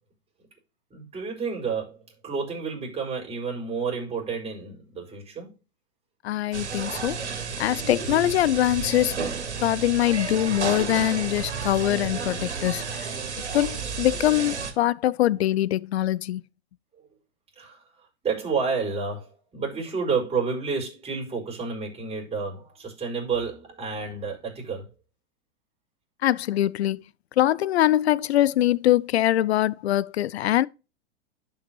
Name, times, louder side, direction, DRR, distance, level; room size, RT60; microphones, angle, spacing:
voice 1, 0.9-5.5 15.2-15.4 17.5-24.9, right 5 dB, 20° right, 5.0 m, -30 dB
voice 2, 6.2-7.2 7.6-9.2 9.6-13.1 13.5-16.4 26.2-27.0 27.4-30.7, left 13 dB, 70° left, 0.5 m, -23 dB
sound 1, 6.5-14.7, right 5 dB, 85° right, 2.3 m, -32 dB
11.5 x 5.7 x 2.9 m
hypercardioid pair, 110°, 33 cm